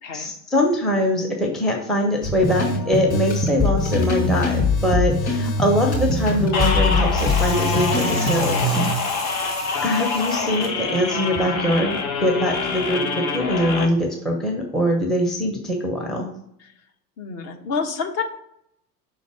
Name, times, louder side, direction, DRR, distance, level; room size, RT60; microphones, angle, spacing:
voice 1, 0.1-8.9 9.8-16.3, equal, ahead, -1 dB, 0.6 m, -22 dB
sound 1, 2.2-9.0, left 2 dB, 15° left, 2.3 m, -22 dB
sound 2, 6.5-13.9, left 4 dB, 60° left, 1.1 m, -26 dB
sound 3, 7.2-12.3, equal, 85° left, 2.1 m, -36 dB
voice 2, 17.2-18.2, left 5 dB, 35° left, 4 dB, 0.8 m, -28 dB
5.4 x 3.9 x 4.8 m, 0.73 s
figure-of-eight pair, 80°, 49 cm